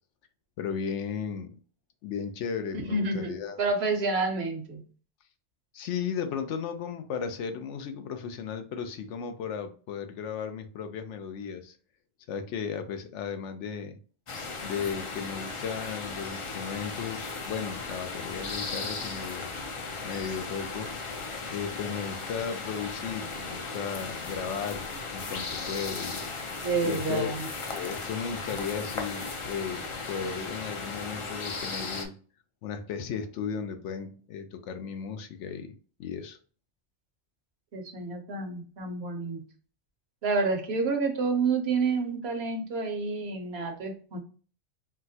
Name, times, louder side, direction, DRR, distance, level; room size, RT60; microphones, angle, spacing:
voice 1, 0.6-1.6 2.0-3.6 5.7-11.8 12.3-14.0 14.6-19.5 20.0-20.9 21.5-26.2 26.8-27.3 27.7-32.1 32.6-35.7 36.0-36.4, left 6 dB, 85° left, 0.9 m, -35 dB
voice 2, 2.9-4.8 26.6-27.5 37.7-39.5 40.2-44.2, right 4 dB, 65° right, 1.0 m, -29 dB
sound 1, 14.3-32.1, left 3 dB, 50° left, 0.4 m, -36 dB
4.2 x 2.1 x 2.7 m
omnidirectional pair, 1.2 m